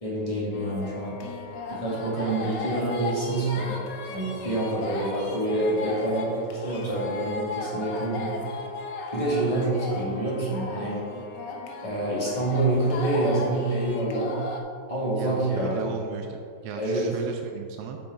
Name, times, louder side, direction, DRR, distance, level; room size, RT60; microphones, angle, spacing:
voice 1, 0.0-1.2 1.7-3.8 4.1-8.4 9.1-11.0 11.8-14.4 14.9-15.9 16.8-17.1, right 2 dB, 20° left, -8 dB, 2.1 m, -27 dB
sound 1, 0.5-14.6, left 3 dB, 80° left, 1.5 m, -36 dB
voice 2, 2.2-2.5 4.9-5.1 15.1-16.4 16.6-18.0, right 6 dB, 75° right, 4 dB, 1.1 m, -36 dB
8.4 x 6.2 x 3.7 m, 2.2 s
omnidirectional pair, 1.9 m